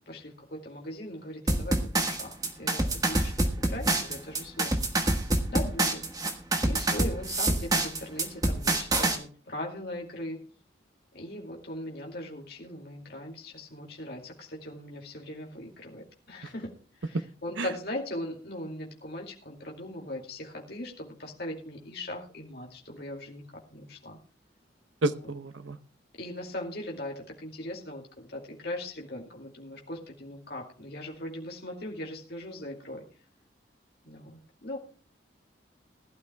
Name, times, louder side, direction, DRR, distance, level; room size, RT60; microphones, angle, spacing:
voice 1, 0.0-4.8 5.5-6.1 6.6-10.4 11.1-16.8 17.0-24.2 25.1-25.2 26.2-33.1 34.0-34.8, left 1 dB, 55° left, 0 dB, 2.4 m, -39 dB
sound 1, 1.5-9.2, right 2 dB, 20° right, 1.4 m, -26 dB
voice 2, 25.0-25.8, right 2 dB, 85° right, 12 dB, 0.8 m, -30 dB
20.5 x 12.5 x 2.3 m, 0.38 s
head